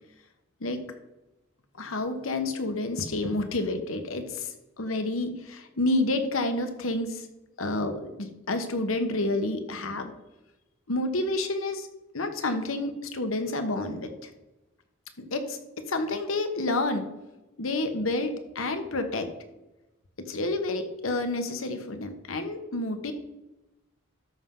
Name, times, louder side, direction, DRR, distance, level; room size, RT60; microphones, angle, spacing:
voice 1, 1.8-7.3 7.6-10.1 10.9-11.9 12.1-14.3 15.3-17.1 17.6-19.3 20.2-23.1, left 2 dB, 80° left, 7 dB, 1.2 m, -29 dB
13.0 x 5.7 x 3.8 m, 1.0 s
head